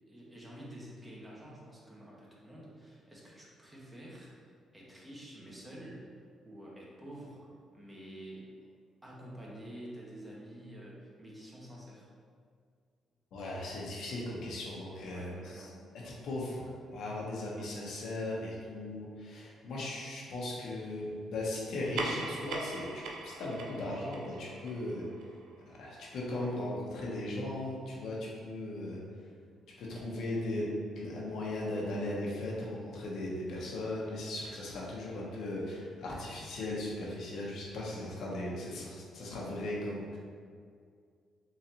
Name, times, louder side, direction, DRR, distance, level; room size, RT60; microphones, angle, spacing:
voice 1, 0.1-4.5 4.7-6.0 6.4-8.5 9.0-12.1 15.0-16.0, right 1 dB, 15° right, -5 dB, 1.0 m, -49 dB
voice 2, 13.3-15.6 16.0-16.6 16.9-25.1 25.7-29.0 29.8-40.2, left 1 dB, 75° left, -4 dB, 0.8 m, -37 dB
sound 1, 21.7-26.6, right 3 dB, 85° right, 0.4 m, -42 dB
3.9 x 3.1 x 2.8 m, 2.1 s
cardioid pair, 90°, 0 cm